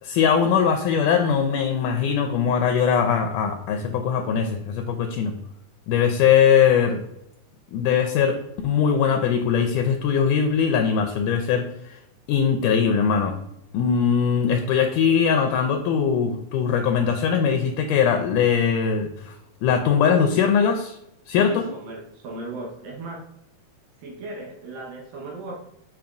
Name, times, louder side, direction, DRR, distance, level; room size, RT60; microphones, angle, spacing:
voice 1, 0.0-5.3 5.9-7.0 7.7-8.4 8.6-12.0 12.3-13.4 13.7-19.3 19.6-21.0 21.3-21.6, left 7 dB, 80° left, 4 dB, 2.0 m, -21 dB
voice 2, 21.4-23.3 24.0-25.6, right 2 dB, 80° right, -2 dB, 2.9 m, -36 dB
7.2 x 5.8 x 2.5 m, 0.80 s
omnidirectional pair, 3.9 m